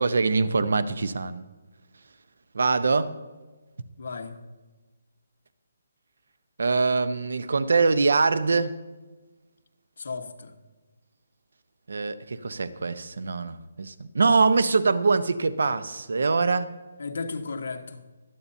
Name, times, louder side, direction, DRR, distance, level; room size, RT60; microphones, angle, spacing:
voice 1, 0.0-1.5 2.5-3.1 6.6-8.7 11.9-16.7, right 4 dB, 75° right, 0.9 m, -23 dB
voice 2, 4.0-4.4 10.0-10.5 17.0-18.0, left 4 dB, 65° left, 1.4 m, -34 dB
24.0 x 8.7 x 2.8 m
hypercardioid pair, 175°, 0 cm